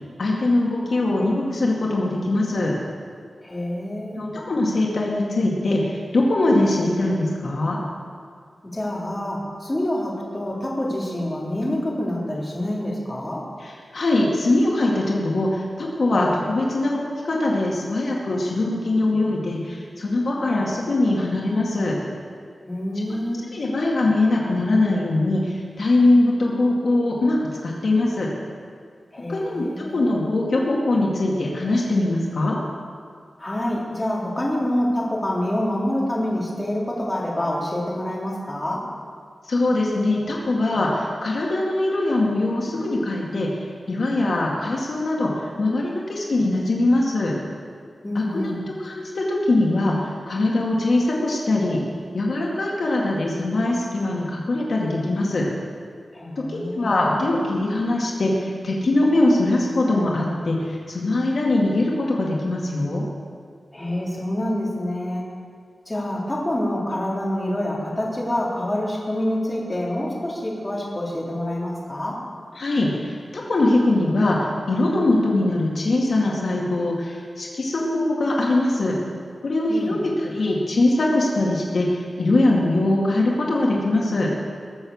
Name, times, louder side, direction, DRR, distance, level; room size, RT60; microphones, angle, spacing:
voice 1, 0.2-2.7 4.2-7.8 11.6-11.8 13.6-22.0 23.0-23.1 23.5-28.3 29.3-32.6 39.5-43.5 43.9-45.3 45.6-47.3 48.1-48.5 48.8-51.8 52.1-55.4 56.4-63.0 72.6-74.4 74.7-78.9 79.4-84.3, left 2 dB, 65° left, -3 dB, 2.2 m, -22 dB
voice 2, 3.4-4.3 8.7-13.4 22.7-23.5 29.1-30.1 33.4-38.8 48.0-48.6 56.1-57.1 63.7-65.2 65.9-72.2 79.7-80.0, left 1 dB, 20° left, -4 dB, 3.3 m, -27 dB
20.5 x 6.9 x 7.2 m, 2.1 s
wide cardioid pair, 120°, 0 cm